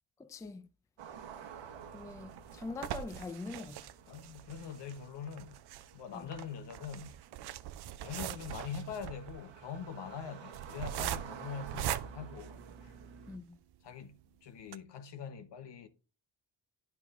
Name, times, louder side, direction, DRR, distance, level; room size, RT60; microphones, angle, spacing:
voice 1, 0.2-0.6 1.9-3.8 6.1-6.3 13.3-13.6, left 3 dB, 10° left, 0.4 m, -43 dB
sound 1, 1.0-13.4, right 7 dB, 75° right, 1.0 m, -51 dB
sound 2, 1.8-13.2 13.7-13.8 14.1-14.2 14.6-14.8, right 12 dB, 60° right, 0.5 m, -42 dB
voice 2, 4.1-5.6 5.9-7.1 8.0-12.9 13.8-15.9, left 6 dB, 65° left, 1.0 m, -43 dB
11.0 x 4.7 x 2.5 m
cardioid pair, 100°, 44 cm